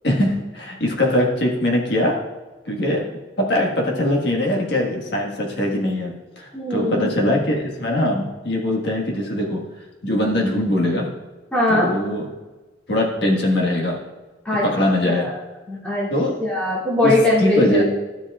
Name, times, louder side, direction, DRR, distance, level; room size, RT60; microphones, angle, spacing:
voice 1, 0.0-2.1 2.7-3.0 3.4-9.6 10.0-11.1 11.7-12.2 12.9-14.0 14.6-15.3 16.1-16.3 17.0-17.1 17.4-17.8, left 1 dB, 60° left, -1 dB, 1.6 m, -21 dB
voice 2, 6.5-7.1 11.5-11.9 14.4-14.7 15.0-15.4 15.7-16.1 16.4-17.8, left 1 dB, 5° left, -8 dB, 2.3 m, -20 dB
12.0 x 7.5 x 2.4 m, 1.2 s
head